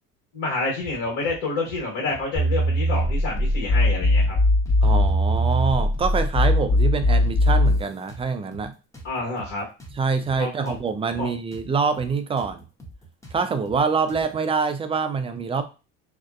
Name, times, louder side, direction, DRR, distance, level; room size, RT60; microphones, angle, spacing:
voice 1, 0.3-4.4 9.0-9.7 10.4-10.8 11.2-11.3, left 3 dB, 70° left, -3 dB, 1.3 m, -28 dB
sound 1, 0.8-1.4 1.6-1.8 2.1-3.1 3.4-3.5 3.8-4.8 5.1-5.2 5.5-6.5 6.8-7.0 7.2-8.7 8.9-11.7 11.9-12.1 12.4-14.4, right 1 dB, 10° left, 0.6 m, -43 dB
sound 2, 2.3-7.8, left 1 dB, 30° left, 0.9 m, -20 dB
voice 2, 4.8-8.7 9.9-12.6 13.3-15.6, right 5 dB, 20° right, 9 dB, 0.3 m, -25 dB
2.6 x 2.1 x 2.3 m, 0.31 s
supercardioid pair, 85°, 31 cm